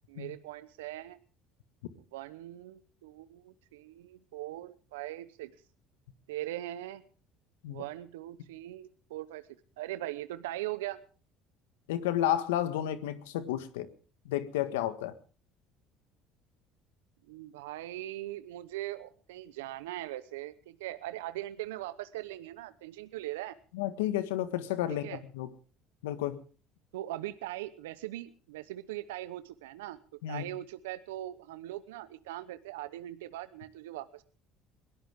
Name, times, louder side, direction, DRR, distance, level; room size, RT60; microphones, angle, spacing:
voice 1, 0.1-1.2 2.1-5.5 6.3-7.0 7.7-9.5 9.8-11.0 17.3-23.6 24.9-25.2 26.9-30.0 30.3-34.2, right 15 dB, 85° right, 13 dB, 0.9 m, -40 dB
voice 2, 11.9-13.9 14.2-15.1 23.7-25.5 26.0-26.4 30.2-30.5, left 12 dB, 85° left, 12 dB, 1.7 m, -31 dB
22.0 x 17.5 x 3.6 m, 0.38 s
hypercardioid pair, 75°, 0 cm